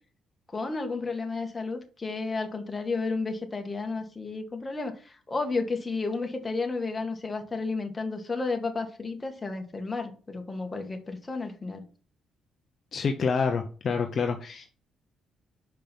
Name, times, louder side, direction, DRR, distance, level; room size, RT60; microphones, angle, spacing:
voice 1, 0.5-11.8, left 3 dB, 25° left, 3 dB, 1.8 m, -32 dB
voice 2, 12.9-14.7, left 5 dB, 50° left, 5 dB, 0.8 m, -27 dB
5.8 x 5.3 x 5.3 m, 0.38 s
cardioid pair, 90°, 0 cm